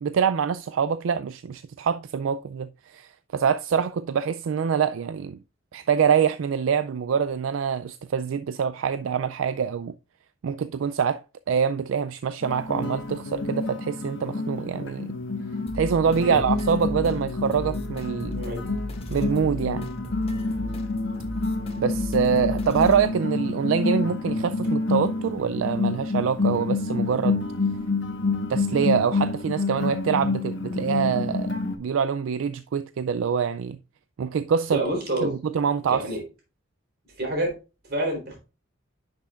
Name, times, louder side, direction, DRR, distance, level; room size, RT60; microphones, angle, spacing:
voice 1, 0.0-5.4 5.7-9.9 10.4-11.2 11.5-15.1 15.7-18.4 19.1-19.9 21.8-27.4 28.5-31.5 31.8-33.8 34.2-34.8 35.2-36.1, right 7 dB, 75° right, 0.4 m, -25 dB
sound 1, 12.4-31.8, left 3 dB, 65° left, 1.4 m, -28 dB
sound 2, 15.7-23.1, left 1 dB, 30° left, 1.5 m, -36 dB
voice 2, 18.3-18.7 34.7-35.3 35.9-36.2 37.2-37.5 37.9-38.4, right 1 dB, 50° right, 3.7 m, -28 dB
10.0 x 6.0 x 2.4 m
head